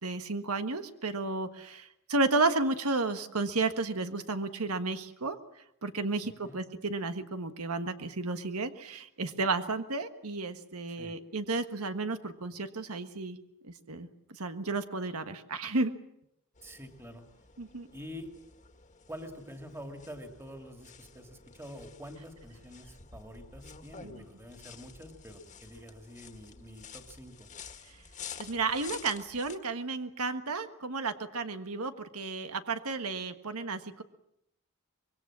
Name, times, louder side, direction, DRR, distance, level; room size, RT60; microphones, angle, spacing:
voice 1, 0.0-5.4 5.8-13.4 13.9-15.9 17.6-17.9 24.0-24.1 28.4-34.0, right 3 dB, 90° right, 9 dB, 1.5 m, -32 dB
voice 2, 6.2-6.6 11.0-11.2 16.6-17.3 17.9-18.3 19.1-27.5, equal, 10° right, 5 dB, 2.6 m, -47 dB
sound 1, 16.6-29.6, left 6 dB, 35° left, 1.8 m, -50 dB
25.0 x 23.0 x 7.5 m, 0.78 s
head